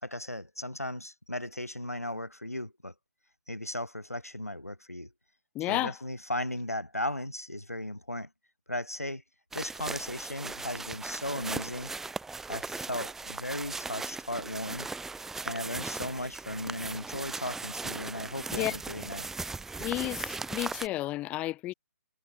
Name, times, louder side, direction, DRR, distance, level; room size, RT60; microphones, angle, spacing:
voice 1, 0.0-2.9 3.5-5.1 5.7-8.3 8.7-9.2 9.5-11.9 12.5-14.9 15.4-19.3, left 1 dB, 85° left, 4.4 m, -36 dB
voice 2, 5.5-6.0 18.5-18.7 19.8-21.7, left 16 dB, 15° left, 2.3 m, -32 dB
sound 1, 9.5-20.9, right 3 dB, 5° right, 4.4 m, -38 dB
figure-of-eight pair, 135°, 8 cm